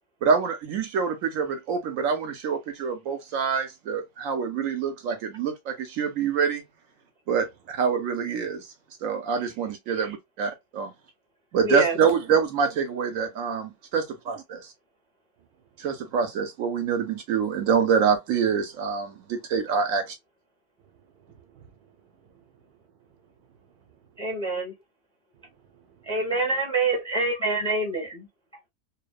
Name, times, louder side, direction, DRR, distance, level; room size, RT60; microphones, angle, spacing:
voice 1, 0.2-6.6 7.3-8.7 9.0-10.9 11.5-14.3 15.8-20.1, right 6 dB, 70° right, 0.9 m, -26 dB
voice 2, 11.6-12.0 24.2-24.7 26.0-28.3, right 3 dB, 5° left, 0.7 m, -26 dB
voice 3, 20.9-22.5 23.4-24.0 25.6-26.1, right 8 dB, 90° right, 1.1 m, -58 dB
2.7 x 2.1 x 2.3 m
omnidirectional pair, 1.6 m